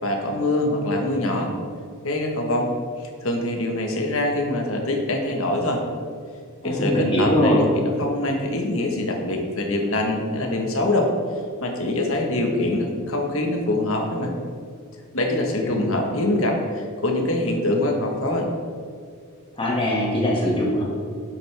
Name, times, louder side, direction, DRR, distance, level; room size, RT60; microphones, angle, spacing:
voice 1, 0.0-1.5 2.0-2.7 3.2-5.8 6.6-11.1 11.6-14.3 15.1-18.5, left 1 dB, 65° left, 2 dB, 1.4 m, -24 dB
voice 2, 6.6-7.6 15.6-15.8 19.6-20.8, left 1 dB, 25° left, -4 dB, 2.0 m, -22 dB
10.5 x 7.9 x 3.5 m, 2.1 s
head